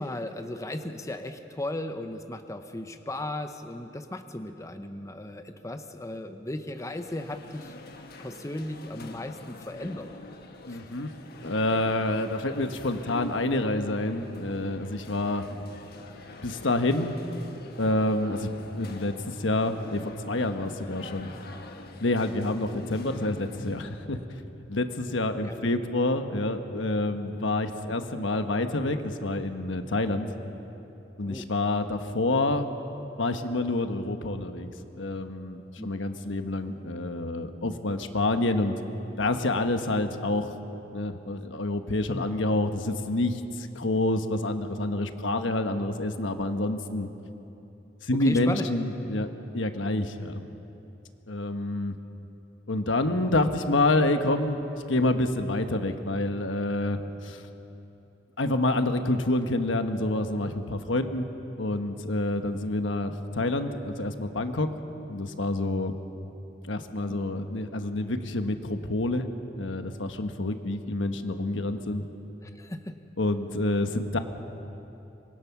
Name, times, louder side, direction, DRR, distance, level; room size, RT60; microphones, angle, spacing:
voice 1, 0.0-7.7 8.2-10.1 10.7-10.8 25.3-25.7 31.3-31.5 35.8-35.9 42.1-42.3 48.2-48.7 67.1-67.3 72.4-73.0, left 1 dB, 15° left, 7 dB, 0.8 m, -36 dB
sound 1, 6.7-24.0, left 2 dB, 55° left, 1.4 m, -45 dB
voice 2, 10.7-11.1 11.4-15.4 16.4-17.1 17.8-18.5 18.8-21.3 22.0-24.4 24.7-30.3 31.2-32.7 33.2-34.7 35.0-38.8 39.2-40.5 40.9-47.1 48.0-49.3 49.5-50.4 51.3-52.0 52.7-57.4 58.4-61.3 61.6-64.7 65.1-66.0 66.6-72.0 73.2-74.2, left 2 dB, 75° left, 7 dB, 1.2 m, -28 dB
26.0 x 21.0 x 6.0 m, 2.9 s
head